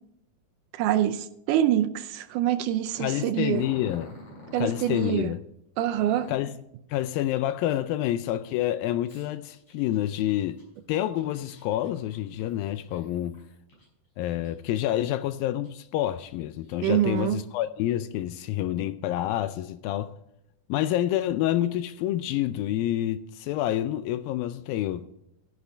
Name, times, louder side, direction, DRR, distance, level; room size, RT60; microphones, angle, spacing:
voice 1, 0.7-3.7 4.5-5.3 5.8-6.3 16.8-17.4, right 11 dB, 80° right, 1.9 m, -25 dB
voice 2, 3.0-4.2 4.6-5.4 6.3-6.6 6.9-10.6 10.9-13.4 14.2-20.1 20.7-25.1, left 13 dB, 85° left, 2.3 m, -28 dB
Growling, 3.5-5.2 5.9-6.5 9.1-13.9 14.3-15.1 15.6-15.7 16.4-17.4, left 1 dB, 50° left, 6.7 m, -48 dB
13.5 x 10.5 x 3.4 m
omnidirectional pair, 4.1 m